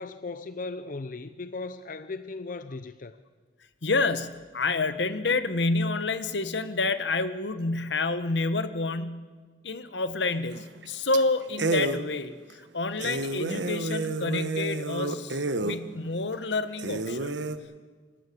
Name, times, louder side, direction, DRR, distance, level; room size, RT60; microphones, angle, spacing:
voice 1, 0.0-3.2, left 3 dB, 50° left, 12 dB, 0.7 m, -37 dB
voice 2, 3.8-9.3 9.6-17.3, left 3 dB, 80° left, 12 dB, 1.2 m, -28 dB
sound 1, 10.5-10.8 11.1-11.2 11.6-12.0 12.5-12.6 13.0-15.8 16.3-16.4 16.8-17.6, right 2 dB, 90° right, 1.2 m, -30 dB
26.0 x 14.0 x 8.5 m, 1.5 s
head